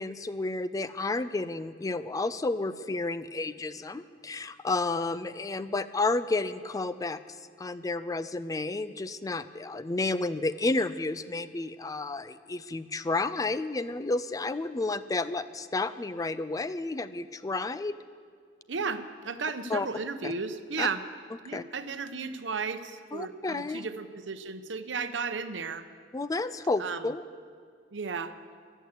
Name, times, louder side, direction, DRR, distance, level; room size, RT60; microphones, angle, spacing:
voice 1, 0.0-7.2 7.6-18.0 19.7-19.9 20.2-20.3 20.8-20.9 21.5-21.6 23.1-23.8 26.1-27.2, left 3 dB, 20° left, 14 dB, 0.4 m, -31 dB
voice 2, 18.7-21.0 21.4-25.8 26.8-27.0 27.9-28.3, right 5 dB, 85° right, 10 dB, 0.8 m, -34 dB
15.0 x 11.0 x 8.1 m, 2.1 s
head